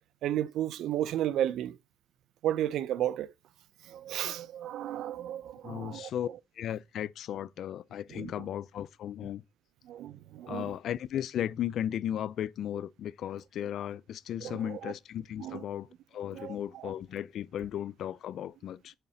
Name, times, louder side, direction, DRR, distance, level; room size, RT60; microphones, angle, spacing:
voice 1, 0.2-1.8 2.4-3.3 3.9-6.1 8.1-8.3 9.9-10.6 14.4-14.9 15.4-15.6 16.3-16.6 16.8-16.9, right 11 dB, 80° right, 0.5 m, -33 dB
voice 2, 5.6-6.3 6.5-9.4 10.5-18.9, left 10 dB, 70° left, 0.4 m, -36 dB
8.0 x 4.2 x 6.8 m
cardioid pair, 90°, 0 cm